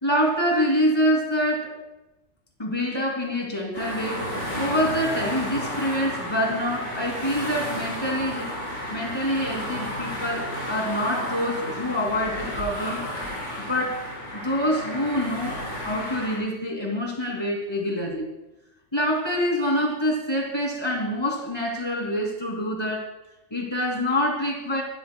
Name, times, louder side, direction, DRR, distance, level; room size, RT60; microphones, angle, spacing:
voice 1, 0.0-1.7 2.6-8.5 8.9-13.0 13.6-18.3 18.9-23.1 23.5-24.8, equal, 20° left, 0 dB, 2.8 m, -26 dB
sound 1, 3.7-16.4, equal, 80° left, 5.3 m, -32 dB
24.5 x 13.0 x 2.3 m, 0.97 s
omnidirectional pair, 1.2 m